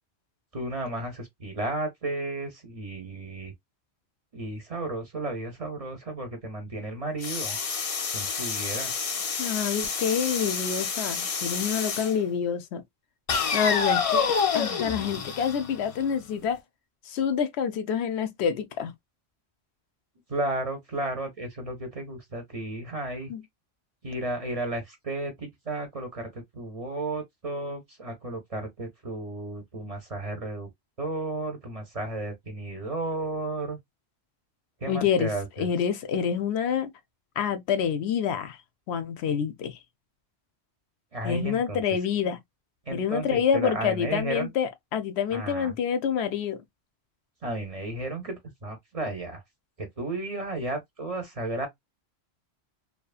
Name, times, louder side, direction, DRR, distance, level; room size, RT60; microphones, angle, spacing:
voice 1, 0.5-3.5 4.3-7.6 8.1-8.9 20.3-23.3 24.0-30.7 31.0-33.8 34.8-35.7 41.1-41.8 42.2-42.3 42.9-44.5 45.3-45.7 47.4-49.4 49.8-51.7, right 2 dB, 40° right, 0.7 m, -33 dB
sound 1, 7.2-12.2 13.3-16.2, left 6 dB, 45° left, 0.5 m, -28 dB
voice 2, 9.4-12.8 13.5-16.6 17.1-18.9 23.3-23.4 34.9-35.3 35.6-36.9 37.4-38.6 38.9-39.8 41.2-42.4 42.9-46.6, left 7 dB, 75° left, 0.8 m, -27 dB
2.7 x 2.3 x 2.3 m
omnidirectional pair, 1.1 m